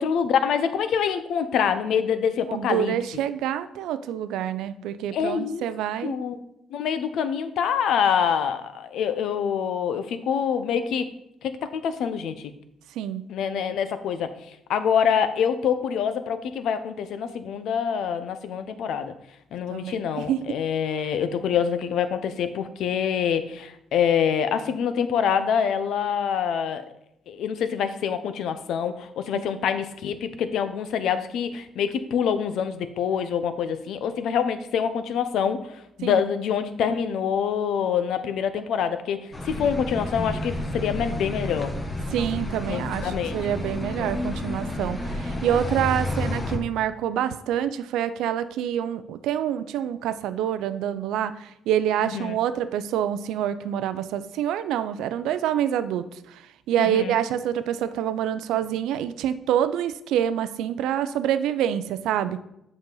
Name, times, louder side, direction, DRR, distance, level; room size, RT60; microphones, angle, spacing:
voice 1, 0.0-3.2 5.1-5.6 6.0-6.4 6.7-11.1 11.4-12.5 13.3-14.3 14.7-19.1 19.5-26.9 27.3-35.7 36.0-39.2 39.4-41.7 42.7-43.4 52.0-52.4 56.8-57.2, left 7 dB, 80° left, 11 dB, 0.6 m, -25 dB
voice 2, 2.5-6.2 13.0-13.2 19.7-20.4 21.0-21.1 29.3-29.5 36.0-36.2 42.1-56.4 56.7-62.4, right 10 dB, 90° right, 12 dB, 0.4 m, -27 dB
sound 1, 39.3-46.6, left 1 dB, 25° left, 1.3 m, -30 dB
8.0 x 5.3 x 3.9 m, 0.81 s
cardioid pair, 90°, 0 cm